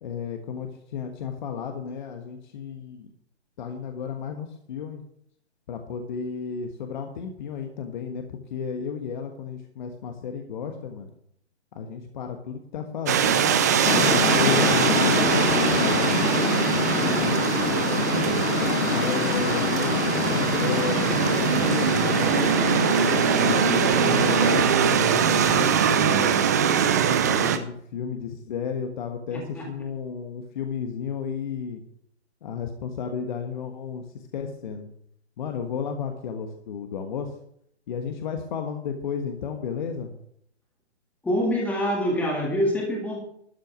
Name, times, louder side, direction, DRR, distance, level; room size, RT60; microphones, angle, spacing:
voice 1, 0.0-3.1 3.6-5.0 5.7-11.1 11.7-16.1 17.0-17.7 18.9-22.4 23.4-26.3 27.2-31.8 32.4-34.1 34.3-34.9 35.4-37.3 37.9-40.1, left 6 dB, 45° left, 5 dB, 1.4 m, -33 dB
sound 1, 13.1-27.6, right 7 dB, 15° right, 0.4 m, -22 dB
sound 2, 13.8-24.6, left 8 dB, 80° left, 0.8 m, -26 dB
voice 2, 16.7-17.4 29.3-29.7 41.2-43.2, equal, 5° left, -1 dB, 2.2 m, -26 dB
13.0 x 6.5 x 8.0 m, 0.69 s
hypercardioid pair, 145°, 34 cm